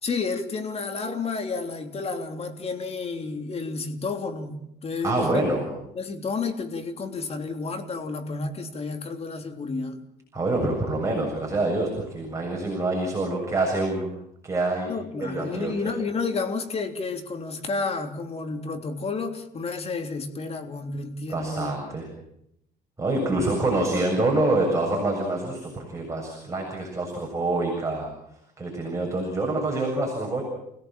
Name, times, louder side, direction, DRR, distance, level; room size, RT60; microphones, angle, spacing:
voice 1, 0.0-5.5 5.9-10.0 14.9-21.7, left 4 dB, 35° left, 6 dB, 3.4 m, -31 dB
voice 2, 5.0-5.7 10.3-14.1 14.4-14.9 15.2-15.9 21.3-22.1 23.0-28.1 28.6-30.4, right 2 dB, 15° right, -1 dB, 7.5 m, -26 dB
30.0 x 17.5 x 7.6 m, 0.79 s
cardioid pair, 110°, 17 cm